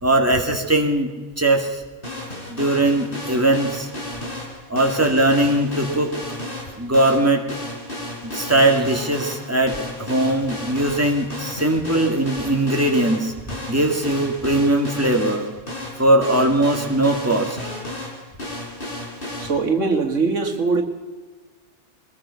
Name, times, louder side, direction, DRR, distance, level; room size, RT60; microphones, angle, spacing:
voice 1, 0.0-1.8 2.5-3.9 4.7-6.1 6.8-7.4 8.2-13.3 13.7-15.5 16.0-17.6, right 1 dB, 10° right, 2 dB, 2.5 m, -20 dB
sound 1, 2.0-19.5, left 1 dB, 45° left, 4.5 m, -33 dB
voice 2, 19.4-20.8, right 4 dB, 90° right, 4 dB, 2.4 m, -21 dB
23.0 x 20.0 x 5.7 m, 1.3 s
omnidirectional pair, 1.2 m